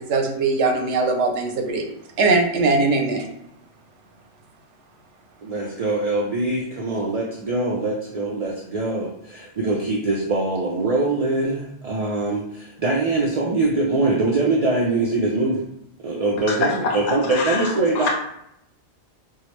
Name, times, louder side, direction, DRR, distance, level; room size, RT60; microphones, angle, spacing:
voice 1, 0.1-1.8 2.2-3.3, right 3 dB, 85° right, 3 dB, 1.0 m, -20 dB
voice 2, 5.4-15.6 16.0-18.1, right 2 dB, 55° right, -2 dB, 0.4 m, -23 dB
voice 3, 17.3-17.7 17.9-18.1, left 4 dB, 75° left, -1 dB, 0.8 m, -25 dB
4.5 x 2.0 x 3.1 m, 0.77 s
omnidirectional pair, 1.2 m